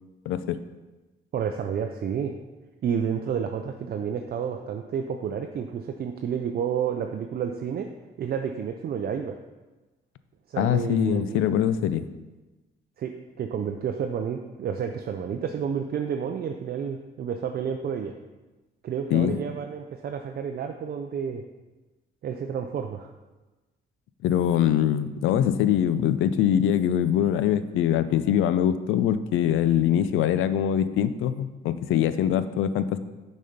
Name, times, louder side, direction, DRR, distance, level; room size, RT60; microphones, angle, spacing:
voice 1, 0.3-0.6 10.6-12.1 19.1-19.4 24.2-33.0, left 10 dB, 85° left, 13 dB, 0.4 m, -23 dB
voice 2, 1.3-2.3 2.8-7.9 8.2-9.4 10.5-11.5 13.0-13.1 13.4-18.1 18.8-21.4 22.2-23.1, right 7 dB, 50° right, 4 dB, 0.5 m, -30 dB
6.5 x 4.2 x 5.1 m, 1.2 s
cardioid pair, 90°, 20 cm